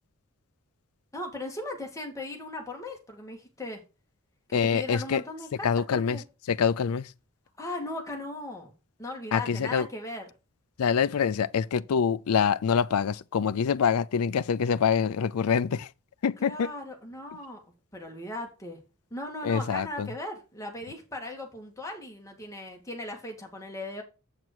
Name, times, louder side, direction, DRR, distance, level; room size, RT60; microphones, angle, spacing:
voice 1, 1.1-3.8 4.5-6.2 7.6-8.7 9.0-10.2 16.4-17.6 17.9-18.8 19.1-24.0, left 2 dB, 15° left, 2.0 m, -38 dB
voice 2, 4.5-5.2 5.6-6.2 6.5-7.1 9.3-9.9 10.8-15.9 16.2-16.7 19.4-20.1, left 6 dB, 75° left, 0.4 m, -25 dB
8.2 x 6.0 x 4.6 m
head